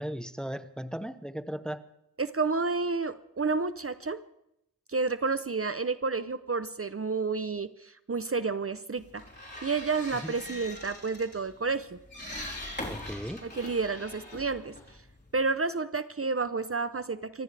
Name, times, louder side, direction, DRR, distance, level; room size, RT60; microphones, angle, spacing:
voice 1, 0.0-1.8 10.2-10.3 12.9-13.5, equal, ahead, 12 dB, 0.8 m, -36 dB
voice 2, 2.2-4.2 4.9-9.2 9.6-12.0 13.4-14.7 15.3-17.4, right 4 dB, 35° right, 13 dB, 0.7 m, -30 dB
sound 1, 9.0-15.5, left 1 dB, 25° left, 3.7 m, -42 dB
24.0 x 14.5 x 3.4 m, 0.80 s
wide cardioid pair, 70°, 38 cm